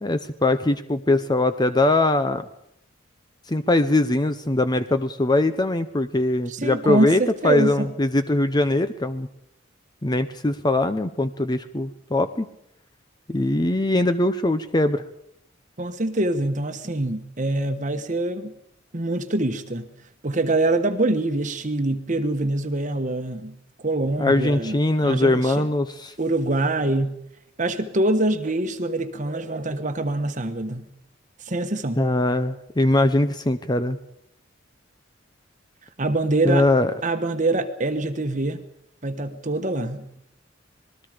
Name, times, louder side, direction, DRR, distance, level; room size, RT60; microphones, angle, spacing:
voice 1, 0.0-2.5 3.5-9.3 10.0-12.5 13.3-15.0 24.2-26.1 32.0-34.0 36.4-36.9, left 2 dB, 20° left, 0.7 m, -21 dB
voice 2, 6.5-7.9 15.8-18.5 18.9-19.9 20.2-23.5 23.8-25.7 26.2-27.1 27.6-30.9 31.4-32.1 36.0-36.7 37.0-38.6 39.0-40.0, right 2 dB, 40° right, 1.2 m, -24 dB
26.5 x 20.5 x 5.0 m
head